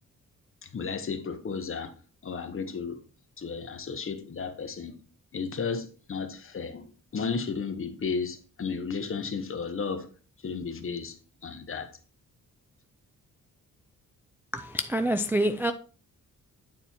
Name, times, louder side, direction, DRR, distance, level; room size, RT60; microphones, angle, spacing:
voice 1, 0.6-1.9 2.2-3.0 3.4-4.9 5.3-10.1 10.4-11.2 11.4-11.9, left 5 dB, 40° left, 1.0 m, -33 dB
voice 2, 14.5-15.7, equal, 5° right, 0.3 m, -26 dB
9.1 x 4.3 x 4.3 m
wide cardioid pair, 155°, 33 cm